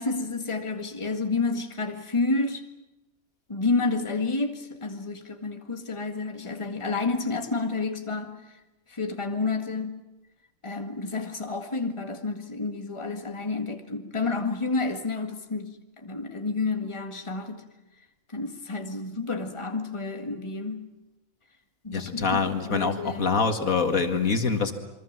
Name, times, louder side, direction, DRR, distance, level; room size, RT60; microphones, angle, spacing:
voice 1, 0.0-2.6 3.5-8.4 8.9-10.0 10.6-17.6 18.3-20.9 21.8-23.4, left 3 dB, 20° left, 5 dB, 1.9 m, -30 dB
voice 2, 21.9-24.7, left 5 dB, 80° left, 6 dB, 2.5 m, -25 dB
27.5 x 23.5 x 7.5 m, 0.99 s
omnidirectional pair, 1.4 m